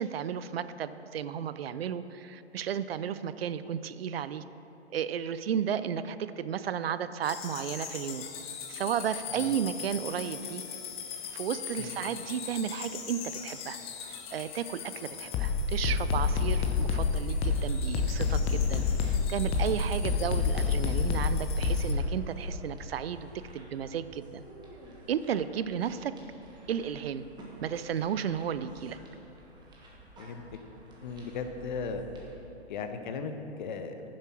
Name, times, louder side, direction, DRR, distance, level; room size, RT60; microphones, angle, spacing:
voice 1, 0.0-4.4 4.9-8.2 8.7-10.6 11.3-13.8 14.3-24.4 25.1-26.1 26.7-27.2 27.6-29.0, right 8 dB, 60° right, 13 dB, 0.5 m, -33 dB
sound 1, 7.2-21.9, left 5 dB, 15° left, 0.7 m, -31 dB
sound 2, 18.6-32.3, left 1 dB, 15° right, 1.3 m, -50 dB
voice 2, 31.0-32.0 32.7-34.1, left 5 dB, 45° left, 7 dB, 0.9 m, -37 dB
9.8 x 7.4 x 5.9 m, 2.9 s
hypercardioid pair, 130°, 33 cm